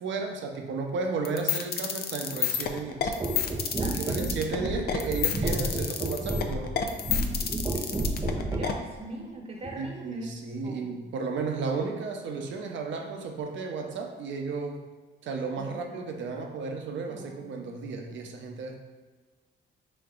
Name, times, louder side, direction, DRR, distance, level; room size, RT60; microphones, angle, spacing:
voice 1, 0.0-3.1 3.8-6.8 9.8-14.8 15.2-18.8, right 4 dB, 70° right, 3 dB, 0.7 m, -33 dB
sound 1, 1.2-8.7, left 9 dB, 50° left, 0.5 m, -29 dB
sound 2, 3.2-8.8 9.6-9.8, right 2 dB, 15° right, 0.4 m, -31 dB
voice 2, 8.3-10.9 15.6-15.8 17.1-17.5, right 2 dB, 30° right, 0 dB, 0.9 m, -41 dB
5.1 x 3.4 x 2.4 m, 1.4 s
cardioid pair, 90°, 20 cm